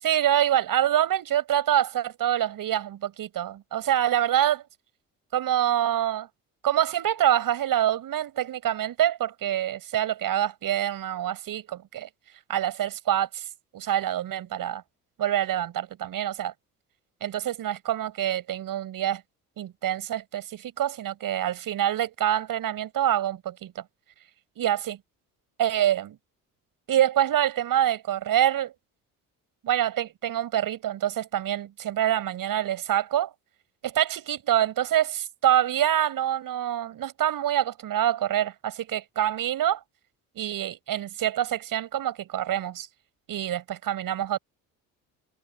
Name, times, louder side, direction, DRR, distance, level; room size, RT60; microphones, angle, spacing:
voice 1, 0.0-4.6 5.3-6.3 6.6-12.1 12.5-13.5 13.7-14.8 15.2-16.5 17.2-19.2 19.6-23.8 24.6-25.0 25.6-26.2 26.9-28.7 29.6-33.3 33.8-39.8 40.3-42.9 43.3-44.4, right 11 dB, 65° right, 6.7 m, -26 dB
supercardioid pair, 70°, 36 cm